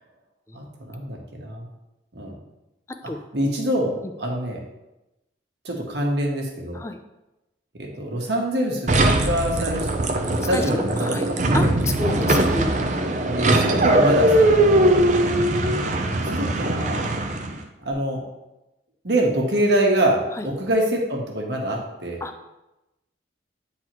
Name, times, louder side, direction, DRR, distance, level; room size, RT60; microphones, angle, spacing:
voice 1, 0.5-1.7 2.1-2.3 3.3-4.6 5.6-6.8 7.8-9.9 10.5-11.7 13.3-15.0 16.3-17.0 17.8-18.2 19.0-22.2, right 1 dB, 70° right, -1 dB, 1.3 m, -25 dB
voice 2, 2.9-3.2 6.7-7.0 10.5-11.3 11.5-12.8 20.3-20.5 22.2-22.3, left 2 dB, 15° left, 7 dB, 0.4 m, -29 dB
sound 1, 8.9-17.6, right 1 dB, 45° right, 0.5 m, -20 dB
8.9 x 3.9 x 3.0 m, 0.97 s
head